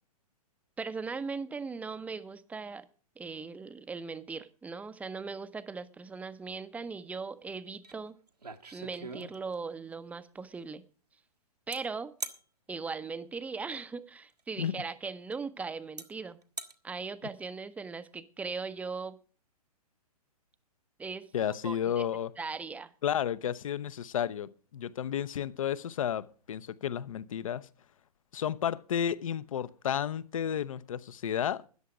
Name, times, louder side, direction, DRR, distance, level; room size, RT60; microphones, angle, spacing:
voice 1, 0.8-2.9 3.2-8.1 8.7-10.8 11.7-12.1 12.7-16.4 16.8-19.2 21.0-21.3 21.6-22.0 22.4-22.9, right 4 dB, 5° right, 0.6 m, -39 dB
sound 1, 7.8-8.0 8.3-9.7 11.7-11.8 12.2-12.4 14.3-14.4 15.3-15.4 16.0-16.1 16.4-16.7, right 4 dB, 85° right, 1.5 m, -40 dB
voice 2, 21.3-22.3 23.0-27.7 28.3-31.7, left 9 dB, 60° left, 0.8 m, -32 dB
13.5 x 10.0 x 4.8 m
figure-of-eight pair, 115°, 20 cm